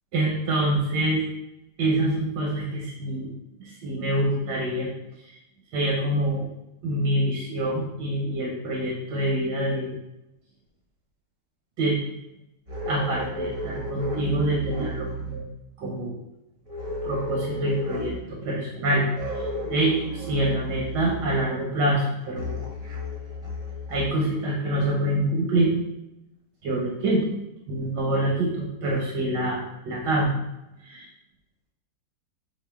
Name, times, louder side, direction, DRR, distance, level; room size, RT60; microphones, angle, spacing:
voice 1, 0.1-1.2 1.8-3.3 3.6-4.9 5.7-6.5 6.8-10.0 11.8-12.0 12.8-15.4 15.8-16.2 17.0-19.1 19.7-22.6 23.9-25.7 26.6-27.3 27.7-30.3 30.8-31.1, right 1 dB, 85° right, -2 dB, 1.5 m, -26 dB
sound 1, 12.7-15.4 16.7-18.3 19.1-21.5 22.4-24.1, equal, 30° right, 0.8 m, -33 dB
6.0 x 2.5 x 3.4 m, 0.90 s
omnidirectional pair, 1.8 m